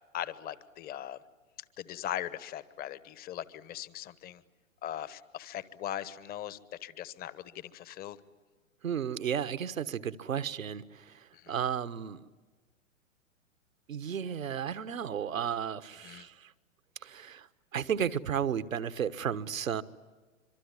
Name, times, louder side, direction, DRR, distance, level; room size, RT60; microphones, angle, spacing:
voice 1, 0.1-1.2 1.8-4.4 4.8-8.2 11.3-11.6 16.0-16.3, left 12 dB, 20° left, 17 dB, 1.1 m, -40 dB
voice 2, 8.8-12.2 13.9-16.5 17.0-19.8, right 8 dB, 75° right, 14 dB, 1.3 m, -33 dB
25.5 x 24.0 x 9.7 m, 1.3 s
hypercardioid pair, 115°, 40 cm